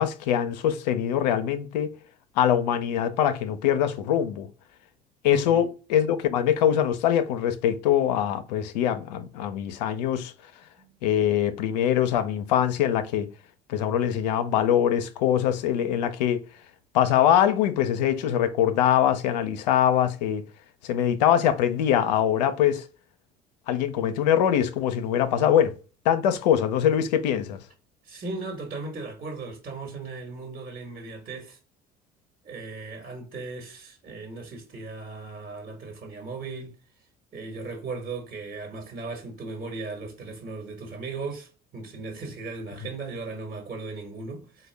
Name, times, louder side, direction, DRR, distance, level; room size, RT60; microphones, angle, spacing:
voice 1, 0.0-1.9 2.4-4.5 5.2-10.3 11.0-13.3 13.7-16.4 16.9-20.4 20.8-22.8 23.7-25.7 26.1-27.6, left 10 dB, 85° left, 0.5 m, -23 dB
voice 2, 5.3-5.7 10.8-11.0 28.0-31.6 32.4-36.8 37.3-44.7, right 3 dB, 40° right, 1.2 m, -37 dB
4.1 x 2.2 x 3.2 m
hypercardioid pair, 70°, 21 cm